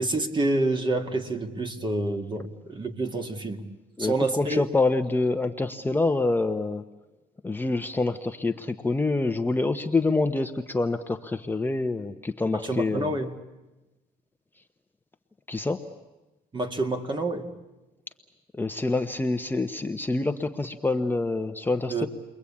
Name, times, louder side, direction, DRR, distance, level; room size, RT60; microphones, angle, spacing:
voice 1, 0.0-3.6 4.0-4.7 12.5-13.3 16.5-17.5 21.9-22.1, right 2 dB, 30° right, 6 dB, 2.2 m, -28 dB
voice 2, 4.0-6.9 7.4-13.1 15.5-15.8 18.5-22.1, left 3 dB, 10° left, 6 dB, 0.9 m, -26 dB
30.0 x 22.0 x 8.6 m, 1.1 s
cardioid pair, 110°, 17 cm